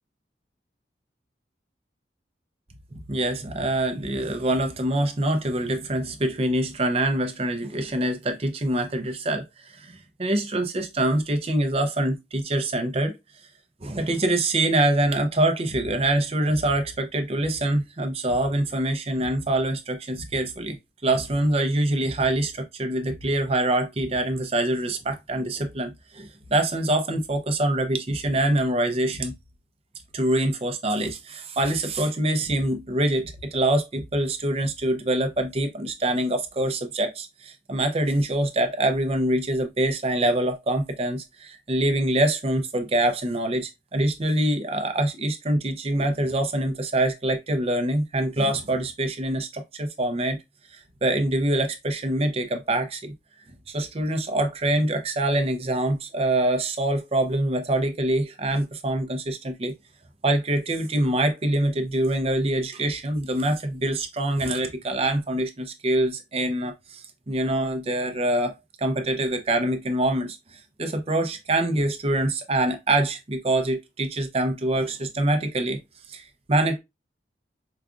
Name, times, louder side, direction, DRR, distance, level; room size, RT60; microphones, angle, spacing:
voice 1, 2.9-13.1 13.8-20.8 21.0-29.3 30.1-50.4 50.7-53.1 53.7-59.7 60.2-75.8 76.1-76.8, right 1 dB, 35° right, 0.6 m, -25 dB
4.8 x 2.4 x 2.4 m
head